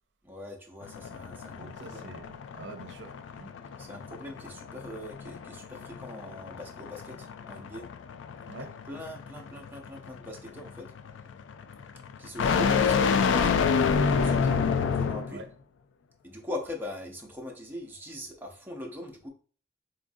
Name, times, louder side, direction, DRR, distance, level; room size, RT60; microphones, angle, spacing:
voice 1, 0.2-2.1 3.8-7.8 8.6-10.9 12.2-15.4 16.2-19.3, left 1 dB, 10° right, 0.6 m, -41 dB
sound 1, 0.8-15.4, left 5 dB, 80° left, 0.3 m, -29 dB
voice 2, 1.5-3.5 8.5-8.7 15.3-15.5, right 3 dB, 70° right, 0.5 m, -45 dB
4.0 x 2.4 x 2.6 m
head